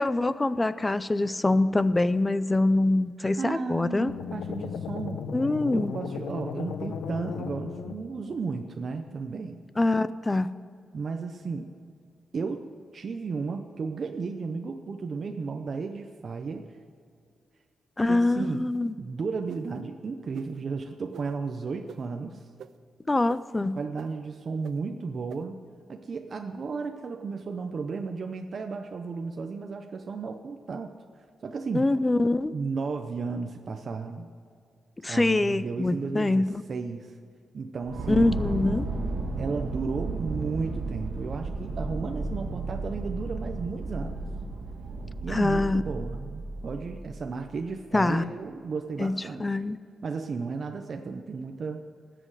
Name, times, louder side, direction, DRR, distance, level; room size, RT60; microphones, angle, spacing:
voice 1, 0.0-4.1 5.3-5.9 9.8-10.5 18.0-18.9 23.1-23.8 31.7-32.5 35.0-36.6 38.1-38.9 45.3-45.8 47.9-48.2 49.0-49.8, left 2 dB, 15° left, 15 dB, 0.3 m, -24 dB
voice 2, 3.2-5.3 5.7-9.6 10.9-11.7 12.3-12.6 12.9-16.7 18.0-18.6 19.0-22.5 23.8-25.6 25.9-30.9 31.4-31.9 32.5-34.3 35.1-37.1 37.5-38.4 39.4-44.2 45.2-49.6 50.0-51.8, right 4 dB, 40° right, 4 dB, 0.6 m, -34 dB
sound 1, 4.1-8.4, left 6 dB, 85° left, 0.7 m, -36 dB
sound 2, 18.3-18.8 19.5-19.6 20.3-20.5 21.1-21.2 21.9-22.0 22.6-22.7 23.3-23.4 24.0-24.1 24.6-24.7 25.3-25.4, right 9 dB, 85° right, 0.4 m, -43 dB
sound 3, 37.8-47.4, right 3 dB, 60° right, 2.1 m, -33 dB
20.0 x 7.7 x 4.8 m, 2.2 s
wide cardioid pair, 175°, 0 cm